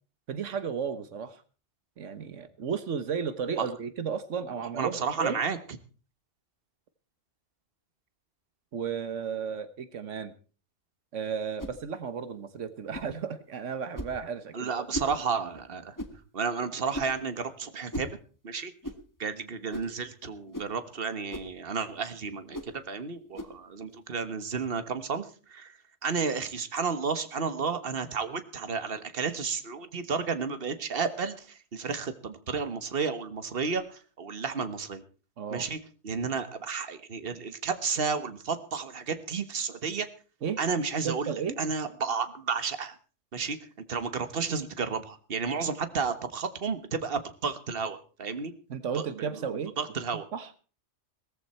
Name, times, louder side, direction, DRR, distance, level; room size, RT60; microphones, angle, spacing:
voice 1, 0.3-1.4 2.0-5.4 8.7-10.3 11.1-14.8 35.4-35.7 40.4-40.6 41.0-41.6 48.7-49.7 50.3-50.5, right 6 dB, 85° right, 12 dB, 1.5 m, -33 dB
voice 2, 4.7-5.6 14.5-16.0 16.3-18.1 18.4-18.7 19.2-35.0 35.5-35.8 36.0-40.1 40.6-42.9 43.3-43.6 43.9-48.5 48.9-50.3, right 5 dB, 50° right, 11 dB, 1.6 m, -32 dB
sound 1, 11.6-11.8 12.9-13.1 13.9-14.2 14.9-15.2 16.0-16.2 16.9-17.2 17.9-18.1 18.8-19.0 19.7-20.0 20.5-20.7 21.3-21.5 22.5-22.7 23.3-23.6, equal, 15° left, 1.7 m, -37 dB
18.5 x 14.5 x 4.4 m, 0.38 s
omnidirectional pair, 1.2 m